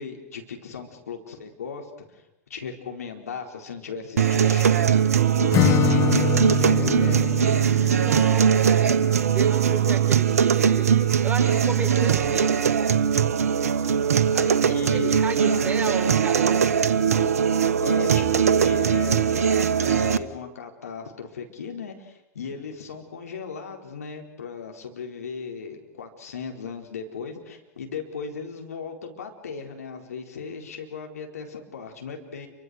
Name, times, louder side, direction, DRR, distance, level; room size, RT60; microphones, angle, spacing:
voice 1, 0.0-1.9 2.1-2.2 2.5-5.0 5.4-7.4 14.4-15.1 15.5-15.7 17.8-32.5, left 5 dB, 75° left, 2 dB, 4.2 m, -37 dB
sound 1, 4.2-20.2, right 8 dB, 70° right, 1.3 m, -21 dB
Acoustic guitar / Strum, 5.5-9.4, left 13 dB, 40° left, 1.2 m, -26 dB
voice 2, 7.9-12.6 14.3-14.5 14.9-16.9, right 4 dB, 20° right, 3 dB, 4.6 m, -33 dB
29.0 x 24.0 x 6.5 m, 0.88 s
figure-of-eight pair, 90°, 8 cm